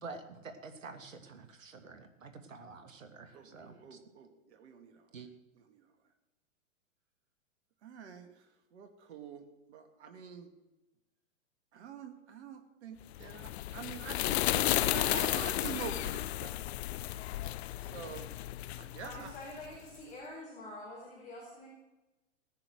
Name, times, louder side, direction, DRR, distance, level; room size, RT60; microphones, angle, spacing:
voice 1, 0.0-4.0 5.1-5.3, right 4 dB, 80° right, 7 dB, 2.4 m, -48 dB
voice 2, 3.3-5.0 5.6-5.8 7.8-8.3 8.7-10.5 11.7-16.5 17.8-18.3 18.8-19.3, right 7 dB, 60° right, 7 dB, 2.6 m, -46 dB
sound 1, 13.1-19.8, left 15 dB, 55° left, 0.5 m, -33 dB
voice 3, 19.0-21.7, left 1 dB, 20° left, -3 dB, 4.9 m, -46 dB
18.0 x 10.0 x 6.5 m, 1.0 s
hypercardioid pair, 120°, 39 cm